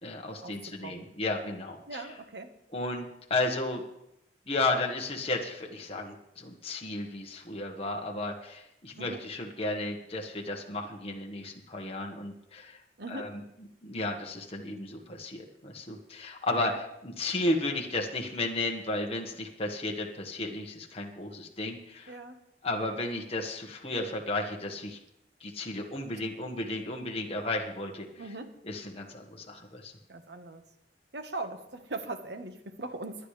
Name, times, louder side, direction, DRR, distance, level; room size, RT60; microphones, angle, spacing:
voice 1, 0.0-2.2 2.7-3.8 4.5-12.8 13.1-22.2 22.6-25.0 25.4-28.3 28.6-29.9, left 2 dB, 35° left, 1 dB, 1.4 m, -34 dB
voice 2, 1.9-2.5 9.0-9.2 13.0-13.3 16.7-16.8 22.1-22.4 28.2-28.6 30.1-30.6 31.1-33.3, right 2 dB, 70° right, 7 dB, 1.4 m, -40 dB
21.5 x 10.0 x 3.3 m, 0.84 s
head